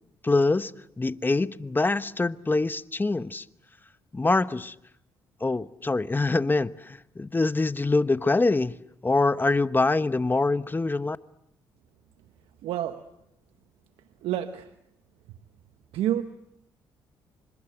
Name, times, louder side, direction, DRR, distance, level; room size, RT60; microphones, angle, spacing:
voice 1, 0.2-0.7 1.0-3.4 4.1-4.7 5.4-8.8 9.0-11.2, left 3 dB, 20° left, 1.1 m, -24 dB
voice 2, 12.6-13.1 14.2-14.7 15.9-16.2, right 11 dB, 80° right, 1.1 m, -28 dB
28.0 x 25.5 x 7.9 m
supercardioid pair, 65°, 9 cm